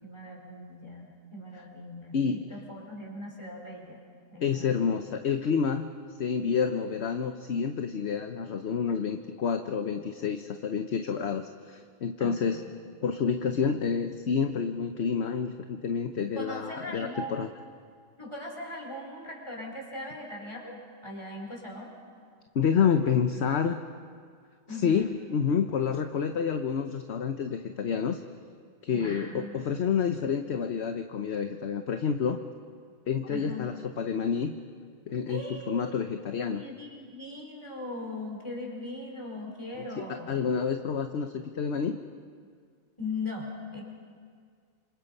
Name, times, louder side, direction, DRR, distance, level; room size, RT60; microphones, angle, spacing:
voice 1, 0.0-4.0 4.3-4.7 12.2-12.6 16.3-17.4 18.2-21.9 24.7-25.1 28.9-29.6 33.3-33.7 35.3-35.9 36.5-40.5 43.0-43.8, left 2 dB, 20° left, 0 dB, 4.7 m, -39 dB
voice 2, 2.1-2.4 4.4-5.9 6.2-12.6 13.0-17.5 22.5-23.8 24.8-28.2 28.8-32.4 33.1-34.5 35.1-36.6 40.0-42.0, left 6 dB, 55° left, 7 dB, 1.1 m, -29 dB
28.5 x 27.0 x 5.4 m, 2.1 s
omnidirectional pair, 1.4 m